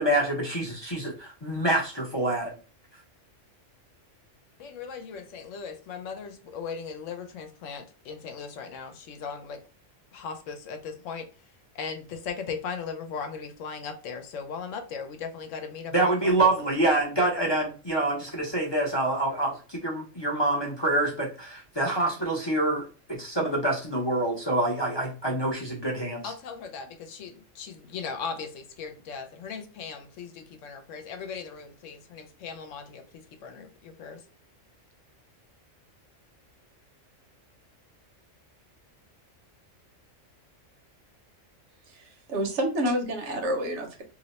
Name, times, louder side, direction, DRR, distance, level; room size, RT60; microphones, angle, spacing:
voice 1, 0.0-2.5 15.9-26.3, right 2 dB, 30° left, 0.5 m, -26 dB
voice 2, 4.6-9.6 10.1-11.3 11.7-16.5 26.2-34.2, left 5 dB, 75° left, 0.9 m, -38 dB
voice 3, 41.9-44.0, equal, 65° right, 1.1 m, -29 dB
2.8 x 2.0 x 4.0 m
omnidirectional pair, 1.3 m